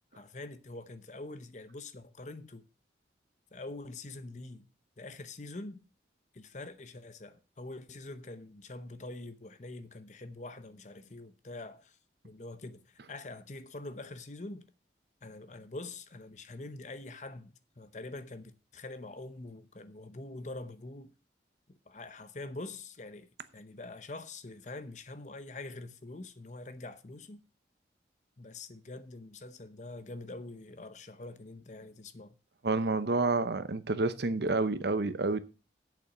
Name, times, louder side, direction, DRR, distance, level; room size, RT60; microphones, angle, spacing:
voice 1, 0.1-2.6 3.5-4.7 5.0-5.8 6.3-12.0 12.2-14.7 15.2-21.1 21.9-27.4 28.4-32.4, left 2 dB, 40° left, 0.8 m, -45 dB
voice 2, 32.6-35.4, right 3 dB, 70° right, 0.8 m, -29 dB
8.3 x 7.0 x 5.9 m
head